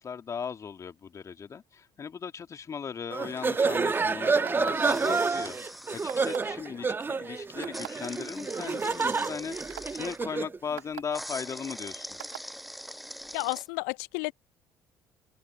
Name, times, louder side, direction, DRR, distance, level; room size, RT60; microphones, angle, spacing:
voice 1, 0.0-5.6 5.9-9.6 9.9-12.2, left 6 dB, 35° left, 2.7 m, -37 dB
sound 1, 3.1-10.6, right 4 dB, 25° right, 1.5 m, -29 dB
sound 2, 4.4-4.9 6.1-6.5 7.6-7.9 8.6-8.7 9.2-9.3 9.7-9.8 10.8-11.0 12.2-12.4, right 22 dB, 70° right, 3.0 m, -41 dB
sound 3, 4.7-6.4 7.7-10.2 11.1-13.6, equal, ahead, 6.0 m, -42 dB
voice 2, 13.3-14.3, left 35 dB, 65° left, 0.4 m, -31 dB
figure-of-eight pair, 50°, 9 cm